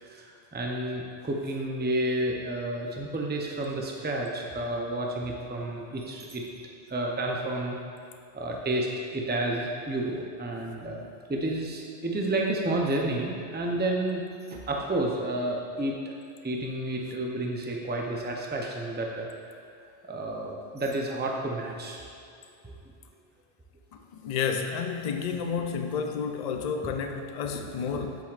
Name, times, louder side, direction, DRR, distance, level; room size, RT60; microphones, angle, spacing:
voice 1, 0.0-6.4 6.9-7.8 8.3-14.2 14.5-16.1 16.4-19.3 20.0-22.0 22.6-22.7 26.8-26.9 27.5-28.1, right 1 dB, 15° right, 0 dB, 0.4 m, -31 dB
voice 2, 24.1-28.2, left 6 dB, 60° left, 5 dB, 0.4 m, -30 dB
7.8 x 7.0 x 2.5 m, 2.5 s
omnidirectional pair, 1.2 m